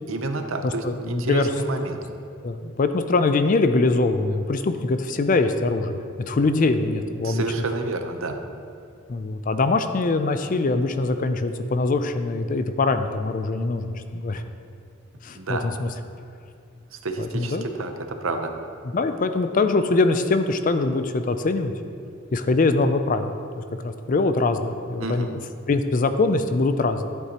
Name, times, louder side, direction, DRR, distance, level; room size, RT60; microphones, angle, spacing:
voice 1, 0.1-2.0 7.2-8.4 15.4-15.7 16.9-18.5 25.0-25.3, right 2 dB, 75° right, 6 dB, 0.7 m, -29 dB
voice 2, 0.6-1.4 2.4-6.0 6.3-7.4 9.1-14.4 15.2-15.9 17.2-17.7 18.8-21.7 22.3-25.3 25.7-27.1, left 3 dB, 40° left, 9 dB, 0.4 m, -23 dB
11.0 x 8.0 x 2.9 m, 2.4 s
head